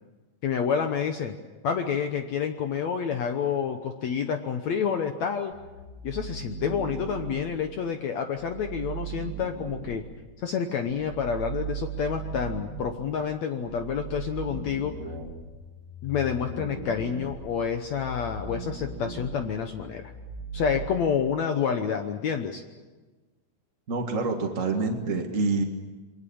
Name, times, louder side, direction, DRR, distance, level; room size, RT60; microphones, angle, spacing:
voice 1, 0.4-1.3 1.6-5.5 6.0-10.0 10.4-14.9 16.0-20.1 20.5-22.6, left 7 dB, 70° left, 6 dB, 1.7 m, -28 dB
sound 1, 5.5-7.4 8.3-10.0 10.9-12.9 13.7-20.9, right 5 dB, 45° right, 4.7 m, -38 dB
voice 2, 23.9-25.6, right 3 dB, 60° right, 3 dB, 0.8 m, -27 dB
28.0 x 22.0 x 7.2 m, 1.2 s
omnidirectional pair, 4.5 m